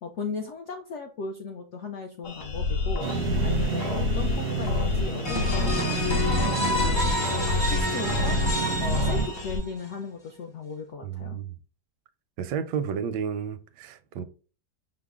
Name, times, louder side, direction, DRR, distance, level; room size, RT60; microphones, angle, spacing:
voice 1, 0.0-3.1 3.4-7.2 7.4-11.4, left 4 dB, 75° left, 0.6 m, -37 dB
sound 1, 2.2-9.6, left 4 dB, 60° left, 1.1 m, -29 dB
sound 2, 3.0-9.3, right 5 dB, 65° right, 0.6 m, -31 dB
voice 2, 3.0-3.6 11.0-11.5 12.4-14.2, right 7 dB, 85° right, 1.2 m, -32 dB
sound 3, 5.2-9.8, left 1 dB, 30° left, 0.4 m, -29 dB
5.7 x 2.0 x 3.5 m
omnidirectional pair, 1.8 m